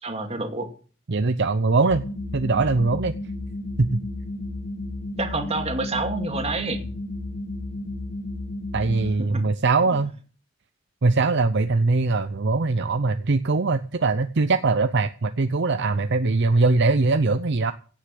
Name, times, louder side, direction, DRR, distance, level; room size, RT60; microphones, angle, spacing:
voice 1, 0.0-0.7 5.2-6.8 9.2-9.5, right 2 dB, 30° right, 5 dB, 2.4 m, -28 dB
voice 2, 1.1-2.1 2.3-3.1 3.8-4.0 8.7-10.1 11.0-17.7, right 3 dB, 60° right, 10 dB, 0.6 m, -21 dB
sound 1, 1.9-9.1, left 2 dB, 45° left, 1.3 m, -33 dB
16.5 x 6.5 x 7.7 m, 0.40 s
head